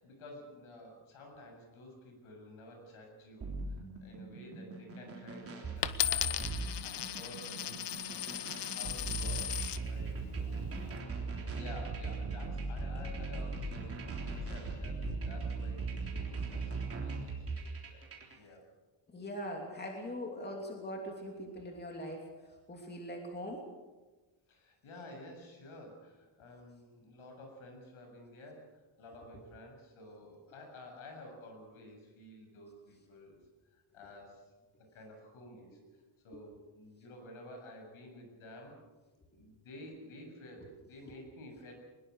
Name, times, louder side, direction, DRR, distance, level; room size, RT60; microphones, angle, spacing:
voice 1, 0.0-7.8 8.1-8.3 8.6-10.6 11.4-14.0 14.4-18.1 18.4-18.6 24.5-33.4 33.7-34.5 34.9-35.8 36.2-38.8 39.3-41.7, left 1 dB, 75° left, 3 dB, 7.5 m, -52 dB
sound 1, 3.4-18.4, right 3 dB, 25° right, 3.7 m, -39 dB
Coin (dropping), 5.8-9.8 10.5-11.0, left 12 dB, 55° left, 1.0 m, -36 dB
voice 2, 19.1-22.3 22.7-23.7 29.3-29.4 35.7-35.8 40.6-40.7, equal, 20° left, 1 dB, 3.0 m, -42 dB
23.0 x 21.0 x 6.5 m, 1.2 s
cardioid pair, 180°, 49 cm